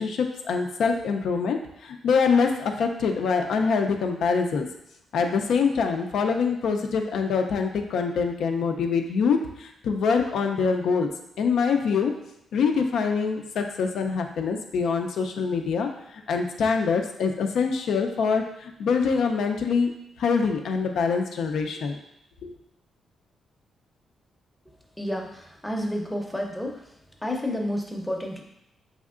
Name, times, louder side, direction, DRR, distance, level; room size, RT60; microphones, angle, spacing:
voice 1, 0.0-4.7 5.1-11.1 11.4-12.1 12.5-15.9 16.3-19.9 20.2-22.0 22.4-22.5, left 5 dB, 80° left, 4 dB, 0.5 m, -24 dB
voice 2, 25.0-26.9 27.2-28.4, left 1 dB, 5° left, 2 dB, 0.6 m, -30 dB
5.4 x 3.4 x 2.4 m, 0.81 s
cardioid pair, 100°, 0 cm